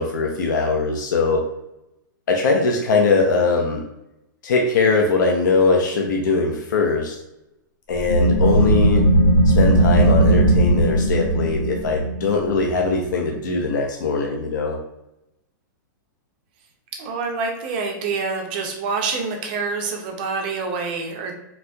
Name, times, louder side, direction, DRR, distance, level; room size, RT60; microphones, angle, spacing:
voice 1, 0.0-1.4 2.3-3.8 4.4-7.2 7.9-9.1 9.5-14.8, left 4 dB, 65° left, 1 dB, 0.5 m, -21 dB
sound 1, 8.0-13.3, right 1 dB, 20° left, 0.9 m, -17 dB
voice 2, 17.0-21.3, right 4 dB, 25° right, 2 dB, 0.5 m, -26 dB
4.1 x 2.7 x 2.2 m, 0.88 s
hypercardioid pair, 180°, 11 cm